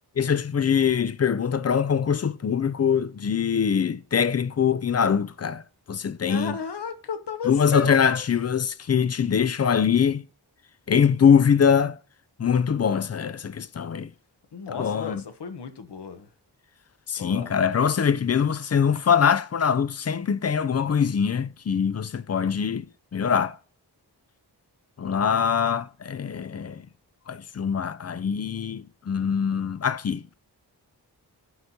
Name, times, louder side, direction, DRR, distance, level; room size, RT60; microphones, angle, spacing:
voice 1, 0.2-5.6 5.9-6.6 7.5-10.2 10.9-12.0 12.4-14.1 14.7-15.2 17.1-22.9 23.1-23.6 25.0-26.9 27.3-30.2, left 7 dB, 40° left, 0.4 m, -23 dB
voice 2, 6.3-8.2 14.5-16.3 17.2-17.5, left 5 dB, 80° left, 0.9 m, -34 dB
11.0 x 4.3 x 2.7 m
wide cardioid pair, 60°, 41 cm